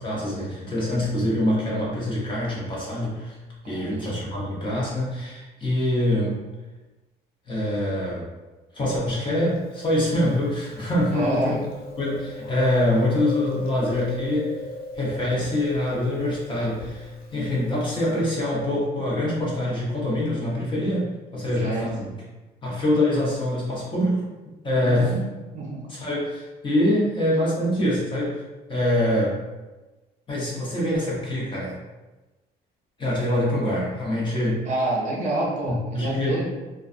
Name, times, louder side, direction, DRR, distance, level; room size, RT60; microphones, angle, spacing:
voice 1, 0.0-3.4 3.6-6.3 7.5-8.3 8.7-11.6 12.0-14.5 14.9-22.1 22.6-24.2 24.6-25.1 25.9-28.4 28.7-29.4 30.3-31.8 33.0-34.6 35.7-36.4, left 1 dB, 30° left, -5 dB, 0.9 m, -24 dB
voice 2, 3.6-4.0 11.1-11.6 21.6-21.9 24.8-25.2 25.5-25.8 34.6-36.5, right 2 dB, 45° right, -3 dB, 0.6 m, -27 dB
Chewing mastication, 9.5-18.5, left 1 dB, 60° left, 0.5 m, -38 dB
2.4 x 2.3 x 2.5 m, 1.1 s
cardioid pair, 110°, 17 cm